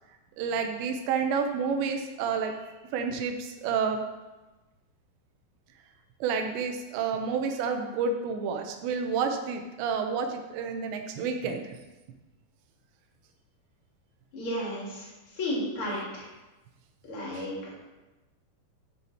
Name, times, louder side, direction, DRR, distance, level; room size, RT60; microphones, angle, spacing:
voice 1, 0.4-2.6 2.9-4.0 6.2-11.7 17.3-17.5, right 5 dB, 85° right, 4 dB, 3.1 m, -29 dB
voice 2, 14.3-16.3 17.0-17.7, left 1 dB, 35° left, -5 dB, 3.3 m, -33 dB
11.5 x 6.9 x 4.3 m, 1.1 s
omnidirectional pair, 4.9 m